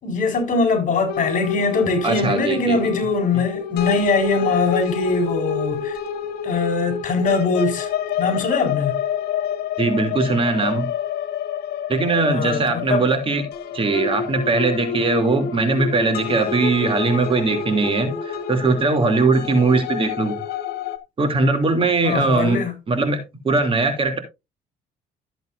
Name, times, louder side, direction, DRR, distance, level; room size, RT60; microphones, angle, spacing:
voice 1, 0.0-6.0 6.4-7.9 8.2-9.0 12.3-13.1 22.0-22.7, left 3 dB, 50° left, 4.3 m, -22 dB
sound 1, 1.1-21.0, left 7 dB, 70° left, 1.7 m, -28 dB
voice 2, 2.0-2.9 9.8-10.9 11.9-13.4 13.7-20.4 21.2-22.6 22.9-24.2, right 3 dB, 30° right, 2.9 m, -20 dB
14.0 x 8.0 x 2.6 m
cardioid pair, 110°, 17 cm